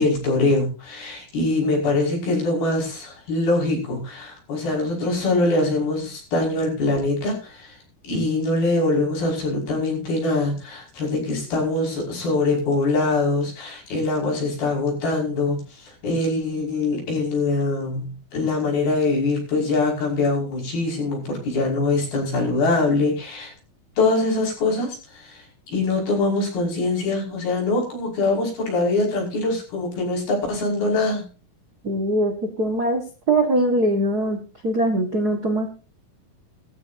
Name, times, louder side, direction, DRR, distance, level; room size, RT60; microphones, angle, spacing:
voice 1, 0.0-7.8 8.1-23.5 24.0-31.2, left 2 dB, 75° left, -1 dB, 7.4 m, -23 dB
voice 2, 31.8-32.3 32.6-33.0 33.3-34.4 34.6-35.7, right 1 dB, 45° right, 3 dB, 1.2 m, -21 dB
18.5 x 14.5 x 2.7 m, 0.33 s
omnidirectional pair, 4.3 m